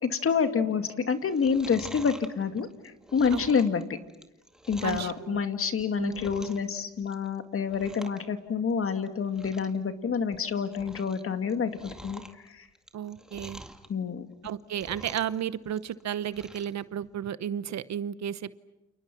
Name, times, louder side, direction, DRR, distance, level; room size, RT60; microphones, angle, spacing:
voice 1, 0.0-3.8 4.7-12.7 13.9-14.3, left 6 dB, 45° left, 8 dB, 2.2 m, -28 dB
Chewing mastication, 1.2-5.2 5.7-6.7 7.0-7.4 7.7-8.2 8.5-8.6 9.0-9.1 9.3-9.8 10.2-11.2 11.5-13.9 14.3-15.4 15.7-16.7 17.1-17.2, right 1 dB, ahead, 2.0 m, -46 dB
voice 2, 4.8-5.4 5.9-6.3 12.9-13.6 14.4-18.6, right 9 dB, 65° right, 15 dB, 1.0 m, -33 dB
29.5 x 29.0 x 6.1 m, 0.98 s
cardioid pair, 90°, 30 cm